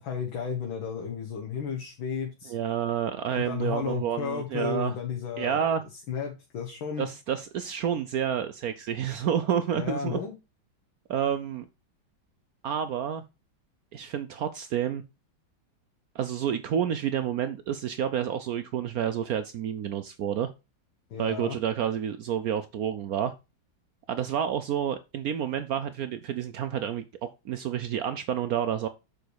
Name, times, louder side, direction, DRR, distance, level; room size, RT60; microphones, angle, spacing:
voice 1, 0.0-2.5 3.3-5.7 6.1-7.1 9.8-10.3 21.1-21.6, left 6 dB, 75° left, 2.0 m, -33 dB
voice 2, 2.5-4.9 5.4-5.8 7.0-10.2 11.1-11.6 12.6-13.2 13.9-15.0 16.1-20.5 21.2-23.3 24.1-27.0 27.4-28.9, right 9 dB, 85° right, 0.8 m, -29 dB
7.0 x 5.1 x 4.6 m
omnidirectional pair, 2.2 m